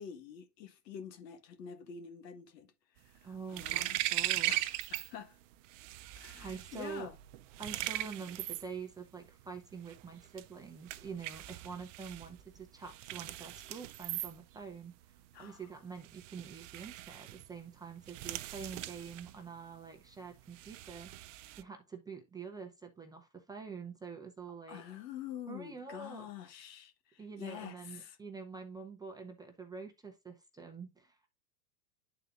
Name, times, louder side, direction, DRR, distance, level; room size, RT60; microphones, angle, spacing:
voice 1, 0.0-4.0 4.5-5.4 6.2-7.2 15.3-15.6 24.7-28.2, left 8 dB, 75° left, 1.5 m, -47 dB
sound 1, 3.0-5.1 5.4-21.6, right 16 dB, 50° right, 0.5 m, -40 dB
voice 2, 3.2-4.6 6.4-7.1 7.6-15.0 15.4-24.8 25.5-26.3 27.2-31.3, right 5 dB, 10° right, 0.6 m, -46 dB
11.0 x 4.1 x 2.5 m
hypercardioid pair, 125°, 49 cm